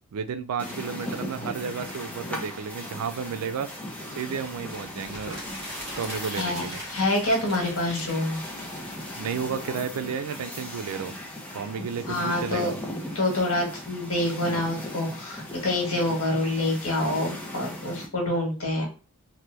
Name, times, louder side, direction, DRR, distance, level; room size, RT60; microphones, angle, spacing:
voice 1, 0.1-3.7 4.1-5.4 6.0-6.8 9.2-11.1 11.5-12.8, right 6 dB, 90° right, 10 dB, 0.4 m, -32 dB
sound 1, 0.6-18.1, left 1 dB, 5° left, 0.6 m, -38 dB
sound 2, 4.9-9.6, equal, 30° right, 1.6 m, -41 dB
voice 2, 6.3-8.4 12.1-12.7 13.1-18.9, left 1 dB, 70° left, 0 dB, 1.3 m, -27 dB
2.9 x 2.2 x 3.2 m, 0.35 s
head